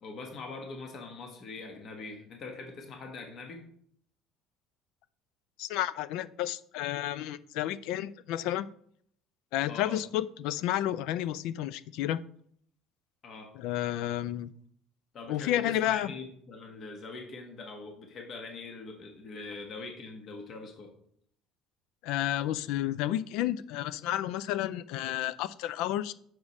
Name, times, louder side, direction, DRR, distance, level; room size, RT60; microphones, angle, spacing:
voice 1, 0.0-3.6 9.7-10.0 13.2-13.5 15.1-20.9, left 3 dB, 40° left, 3 dB, 1.2 m, -43 dB
voice 2, 5.6-8.7 9.5-12.2 13.5-14.5 15.3-16.1 22.0-26.1, left 13 dB, 75° left, 17 dB, 0.3 m, -31 dB
6.2 x 4.9 x 4.1 m, 0.63 s
cardioid pair, 140°, 0 cm